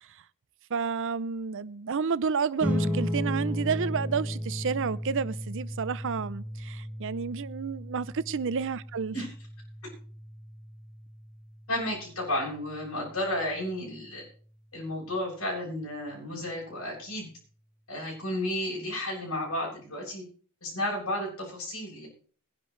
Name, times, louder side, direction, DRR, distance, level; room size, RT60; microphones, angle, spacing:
voice 1, 0.7-9.1, right 5 dB, 60° right, 0.6 m, -30 dB
sound 1, 2.6-13.4, equal, 10° right, 1.9 m, -35 dB
voice 2, 11.7-14.2 14.7-17.3 17.9-20.2 20.6-22.1, left 1 dB, 85° left, 7.6 m, -32 dB
21.5 x 11.0 x 3.3 m
head